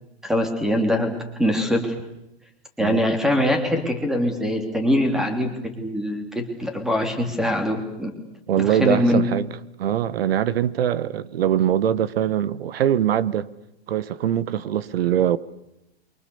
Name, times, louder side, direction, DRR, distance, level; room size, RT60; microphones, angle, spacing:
voice 1, 0.2-2.0 2.8-8.1 8.6-9.2, left 1 dB, ahead, 3.2 m, -23 dB
voice 2, 8.5-9.5 9.8-13.5 13.9-15.4, right 10 dB, 65° right, 1.4 m, -22 dB
28.5 x 24.5 x 7.1 m
hypercardioid pair, 155°, 32 cm